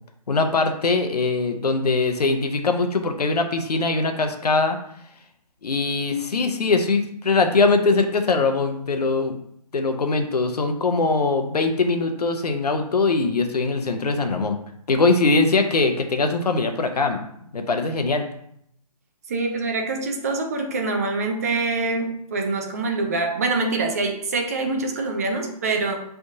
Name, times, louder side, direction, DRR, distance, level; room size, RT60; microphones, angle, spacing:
voice 1, 0.3-4.8 5.6-9.4 9.7-14.6 14.9-17.2 17.5-18.3, left 3 dB, 80° left, 6 dB, 0.8 m, -21 dB
voice 2, 19.3-26.0, right 3 dB, 25° right, 3 dB, 0.5 m, -25 dB
4.8 x 3.4 x 2.7 m, 0.72 s
hypercardioid pair, 160°, 20 cm